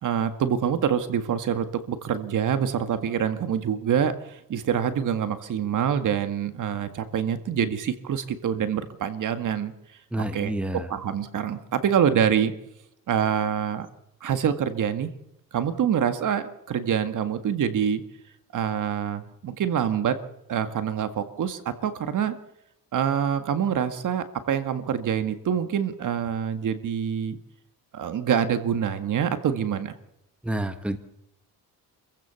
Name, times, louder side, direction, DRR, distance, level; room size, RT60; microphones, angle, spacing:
voice 1, 0.0-9.7 10.3-10.5 10.9-12.5 13.1-13.9 14.2-15.1 15.5-18.0 18.5-20.2 20.5-22.4 22.9-27.4 27.9-29.9, right 8 dB, 60° right, 10 dB, 2.0 m, -26 dB
voice 2, 10.1-10.9 30.4-31.0, right 1 dB, 5° right, 9 dB, 1.3 m, -29 dB
27.5 x 15.5 x 7.1 m, 0.82 s
cardioid pair, 135°, 35 cm